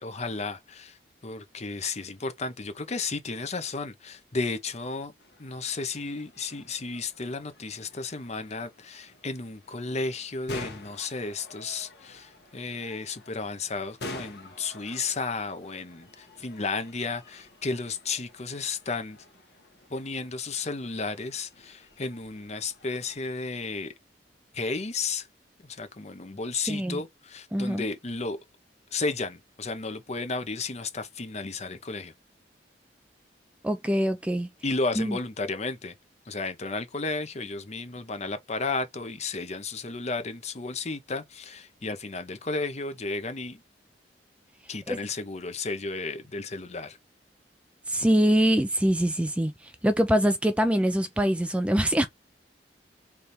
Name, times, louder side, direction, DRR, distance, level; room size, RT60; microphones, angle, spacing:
voice 1, 0.0-1.0 1.2-5.1 5.4-19.2 19.9-23.9 24.5-25.3 25.6-28.4 28.9-32.1 34.6-35.9 36.3-43.6 44.7-47.0, left 3 dB, 40° left, 0.8 m, -33 dB
sound 1, 5.2-23.2, left 2 dB, 65° left, 1.3 m, -48 dB
voice 2, 26.7-27.0 27.5-27.9 33.6-34.5 35.0-35.2 44.9-45.0 47.9-49.5 49.8-52.1, equal, 5° right, 0.4 m, -24 dB
3.5 x 3.3 x 4.3 m
head